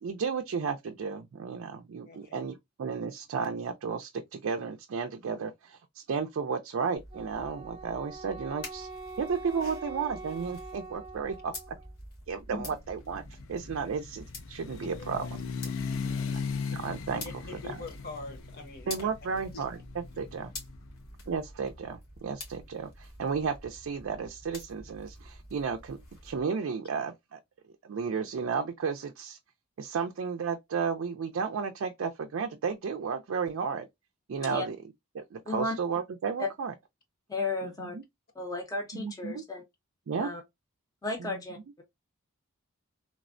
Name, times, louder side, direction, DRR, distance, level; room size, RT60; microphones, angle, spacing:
voice 1, 0.0-8.9 9.2-11.5 12.3-15.2 16.7-17.3 17.6-17.8 18.9-19.8 20.2-20.5 21.3-27.4 27.8-29.4 29.8-33.9 34.3-34.8 35.1-36.7 37.6-38.0 38.9-39.4 40.1-40.3 41.2-41.4, right 5 dB, 65° right, 0.4 m, -33 dB
voice 2, 2.0-2.4 14.5-15.3 15.6-16.6 17.5-19.1 19.5-19.7 20.4-20.5 34.3-34.6, left 4 dB, 45° left, 0.8 m, -45 dB
sound 1, 7.0-26.4, left 1 dB, 80° left, 1.4 m, -47 dB
Wind instrument woodwind instrument, 7.1-11.9, right 3 dB, 25° right, 0.8 m, -44 dB
sound 2, 12.9-20.9, left 5 dB, 65° left, 0.4 m, -38 dB
voice 3, 37.3-38.0 38.4-39.6 40.2-40.4 41.0-41.8, left 3 dB, 15° left, 0.6 m, -34 dB
3.2 x 2.1 x 2.4 m
head